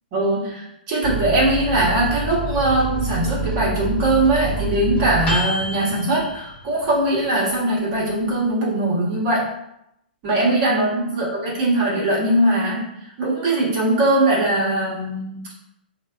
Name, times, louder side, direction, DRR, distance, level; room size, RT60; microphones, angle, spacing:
voice 1, 0.1-9.5 10.2-15.6, right 1 dB, 40° right, -6 dB, 1.0 m, -21 dB
Microwave oven, 1.0-7.1 7.5-7.6 7.9-8.5, right 2 dB, 25° left, 1.1 m, -27 dB
3.3 x 2.2 x 2.3 m, 0.80 s
figure-of-eight pair, 120°, 5 cm